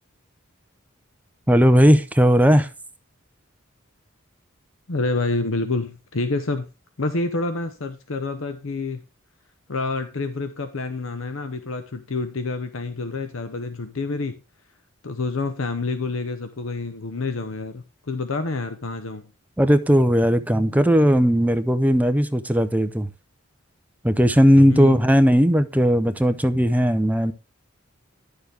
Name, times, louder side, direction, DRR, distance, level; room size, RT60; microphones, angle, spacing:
voice 1, 1.5-2.7 19.6-23.1 24.0-27.3, equal, 10° right, 0.6 m, -17 dB
voice 2, 4.9-6.7 7.0-9.0 9.7-14.4 15.0-19.2 24.7-25.0, left 3 dB, 70° left, 0.8 m, -28 dB
11.0 x 6.7 x 3.4 m
head